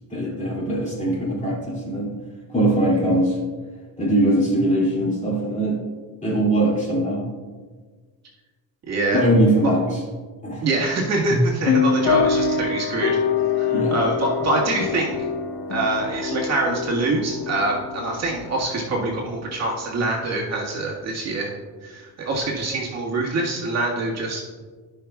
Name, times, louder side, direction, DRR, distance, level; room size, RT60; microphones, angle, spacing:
voice 1, 0.1-2.1 2.5-3.4 4.0-5.8 6.2-7.2 9.1-10.0 10.4-10.7 11.3-11.4 13.7-14.0, right 1 dB, 20° left, -4 dB, 2.6 m, -21 dB
voice 2, 8.9-9.2 10.6-13.2 13.6-15.2 15.7-21.5 21.8-24.4, right 2 dB, 45° right, -2 dB, 1.8 m, -25 dB
sound 1, 11.7-19.8, left 6 dB, 80° left, 1.1 m, -25 dB
15.5 x 5.7 x 2.4 m, 1.4 s
cardioid pair, 130°, 36 cm